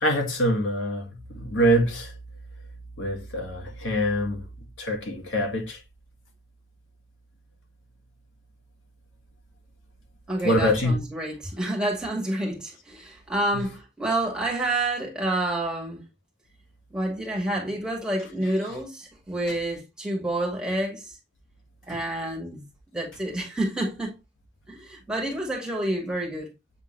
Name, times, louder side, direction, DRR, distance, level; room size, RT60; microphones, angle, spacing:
voice 1, 0.0-2.1 3.0-4.4 4.8-5.8 10.4-11.0 13.5-13.6, equal, 85° left, 2.0 m, -24 dB
voice 2, 10.3-16.1 16.9-21.1 21.9-22.6 22.9-24.1 24.7-26.5, right 1 dB, 5° right, 2.3 m, -29 dB
8.2 x 3.7 x 3.3 m
head